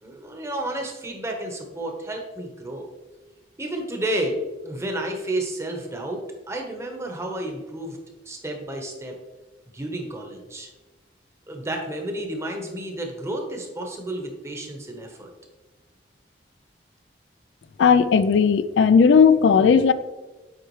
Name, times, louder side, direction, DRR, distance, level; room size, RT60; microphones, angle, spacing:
voice 1, 0.0-2.9 3.6-8.0 8.3-9.2 9.7-10.7 11.5-15.3, right 1 dB, 15° right, 2 dB, 0.9 m, -31 dB
voice 2, 17.8-19.9, left 6 dB, 80° left, 14 dB, 0.3 m, -16 dB
8.1 x 4.7 x 3.1 m, 1.2 s
head